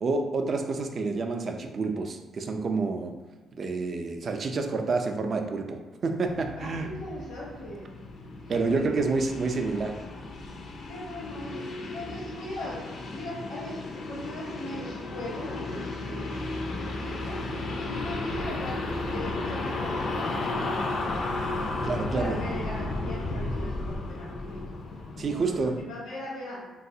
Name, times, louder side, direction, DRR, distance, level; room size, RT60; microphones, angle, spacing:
voice 1, 0.0-3.2 3.5-6.9 8.5-10.0 21.8-22.4 25.2-25.8, right 3 dB, 45° right, 5 dB, 0.3 m, -28 dB
sound 1, 6.2-25.8, left 2 dB, 60° left, 0.4 m, -34 dB
voice 2, 6.6-7.9 8.5-8.8 10.8-11.6 11.9-17.4 17.8-19.9 20.2-24.7 25.2-26.6, left 1 dB, 85° left, -9 dB, 0.8 m, -40 dB
3.4 x 2.3 x 2.7 m, 1.2 s
cardioid pair, 90°, 0 cm